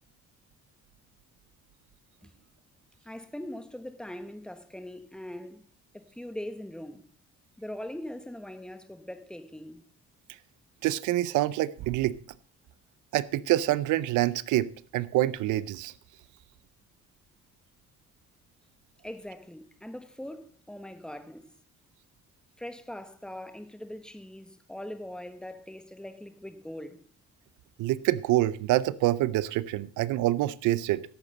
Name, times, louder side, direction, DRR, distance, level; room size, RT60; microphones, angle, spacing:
voice 1, 3.0-5.6 5.9-7.0 7.6-9.8 19.0-21.5 22.6-27.0, left 1 dB, 5° left, 1.4 m, -41 dB
voice 2, 10.8-12.2 13.1-15.9 27.8-31.0, right 15 dB, 90° right, 0.6 m, -26 dB
11.0 x 8.2 x 5.2 m
cardioid pair, 90°, 30 cm